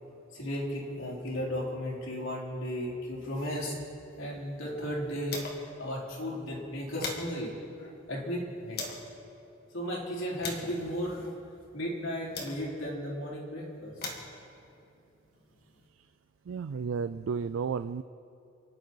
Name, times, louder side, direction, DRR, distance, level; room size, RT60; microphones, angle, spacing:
voice 1, 0.3-3.8 4.2-5.4 5.8-7.5 7.8-8.8 9.7-11.3 11.7-14.1, equal, 85° left, -4 dB, 4.2 m, -35 dB
sound 1, 4.0-5.8 6.1-6.2 6.6-9.1 9.7-12.9 13.7-15.9, left 3 dB, 50° left, 2.2 m, -43 dB
voice 2, 16.5-18.0, right 5 dB, 90° right, 12 dB, 0.4 m, -33 dB
29.0 x 11.0 x 4.7 m, 2.8 s
head